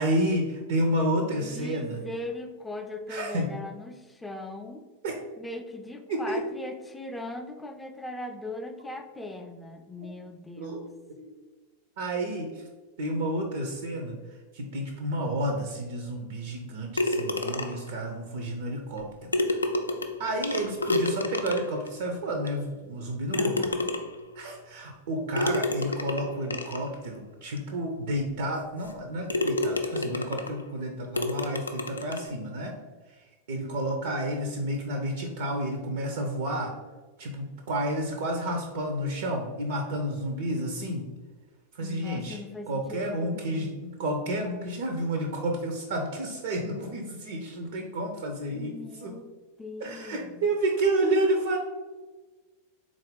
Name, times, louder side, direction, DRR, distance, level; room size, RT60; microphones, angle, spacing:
voice 1, 0.0-2.0 3.1-3.5 5.0-5.1 6.1-6.4 10.6-10.8 11.2-11.3 12.0-12.6 13.0-14.2 14.5-19.3 20.2-23.7 24.4-32.7 33.5-36.7 37.2-41.0 41.7-42.4 42.7-49.1 49.8-51.6, right 1 dB, 55° right, 3 dB, 0.5 m, -30 dB
voice 2, 1.2-4.9 5.4-10.9 23.4-23.9 41.8-43.7 48.5-49.3 49.6-50.5, left 2 dB, 5° left, 5 dB, 0.4 m, -39 dB
sound 1, 17.0-17.9 19.0-19.1 19.3-21.9 22.5-22.6 23.3-24.3 25.4-26.9 27.6-27.7 28.2-28.3 28.8-29.0 29.3-30.6 31.2-32.3, left 2 dB, 80° left, 0.3 m, -29 dB
3.8 x 2.4 x 3.7 m, 1.3 s
figure-of-eight pair, 90°, 0 cm